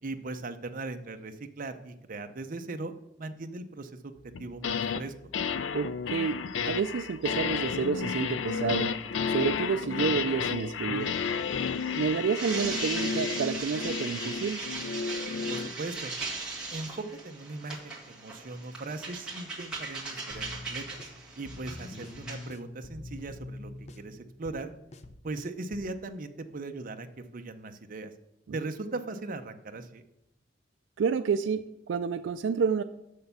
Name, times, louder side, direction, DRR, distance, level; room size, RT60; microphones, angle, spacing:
voice 1, 0.0-4.1 4.4-5.1 15.5-16.1 16.7-21.0 21.4-24.7 25.2-28.1 28.5-30.0, right 2 dB, 50° right, 7 dB, 0.7 m, -39 dB
sound 1, 4.4-5.0 5.3-15.7, left 6 dB, 85° left, 0.4 m, -32 dB
voice 2, 5.7-8.9 9.3-11.1 11.9-14.6 31.0-32.8, right 6 dB, 80° right, 10 dB, 0.4 m, -29 dB
sound 2, 11.0-22.5, right 3 dB, 5° right, 2.1 m, -39 dB
sound 3, 20.3-26.0, left 2 dB, 35° left, 0.6 m, -45 dB
6.8 x 6.6 x 6.8 m, 0.87 s
head